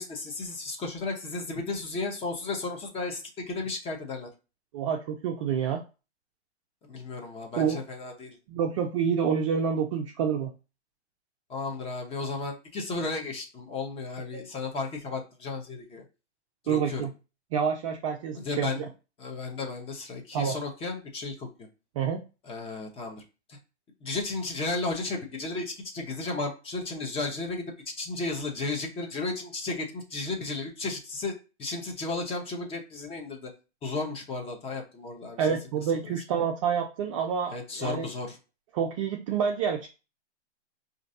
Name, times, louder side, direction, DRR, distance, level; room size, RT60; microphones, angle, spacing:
voice 1, 0.0-4.3 6.8-8.4 11.5-16.0 16.6-17.0 18.3-18.9 19.2-21.5 22.5-23.2 23.5-23.6 24.0-33.5 33.8-35.5 35.9-36.1 37.5-38.4, left 3 dB, 15° left, 2 dB, 0.8 m, -34 dB
voice 2, 4.7-5.8 7.6-7.8 8.5-10.5 14.3-14.4 16.7-17.1 17.5-18.8 20.3-20.5 22.0-22.2 35.4-38.1 38.7-39.9, right 7 dB, 30° right, 2 dB, 0.4 m, -28 dB
5.0 x 2.6 x 2.6 m, 0.31 s
hypercardioid pair, 120°, 35 cm